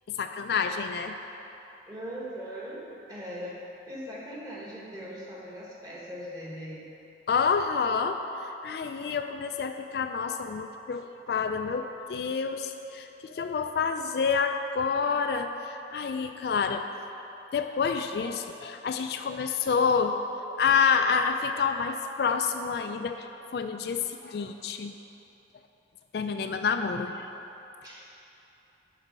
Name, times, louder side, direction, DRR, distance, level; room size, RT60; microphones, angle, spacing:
voice 1, 0.2-1.1 7.3-16.9 17.5-20.1 20.6-23.3 23.5-24.9 26.1-27.2, left 5 dB, 60° left, 6 dB, 0.3 m, -28 dB
voice 2, 1.9-3.6 3.9-6.8 26.1-26.6 27.8-28.2, equal, 20° right, -6 dB, 1.5 m, -40 dB
10.5 x 4.1 x 5.3 m, 3.0 s
head